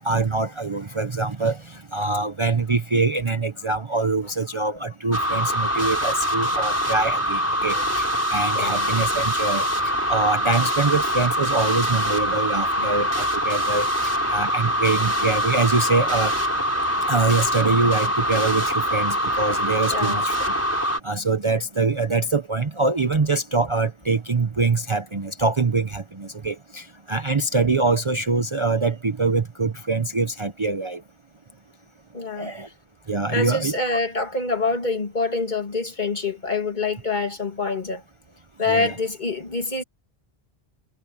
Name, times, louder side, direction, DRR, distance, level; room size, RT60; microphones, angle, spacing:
voice 1, 0.0-13.9 14.3-16.3 17.1-20.5 21.0-31.0 32.4-32.7 33.1-33.7 38.7-38.9, right 3 dB, 30° right, 0.7 m, -24 dB
voice 2, 5.1-5.5 7.7-7.8 8.5-8.9 12.8-12.9 19.9-20.2 32.1-32.5 33.3-38.0 38.6-39.8, left 3 dB, 45° left, 2.6 m, -26 dB
sound 1, 5.1-21.0, equal, 15° left, 4.4 m, -24 dB
omnidirectional pair, 1.1 m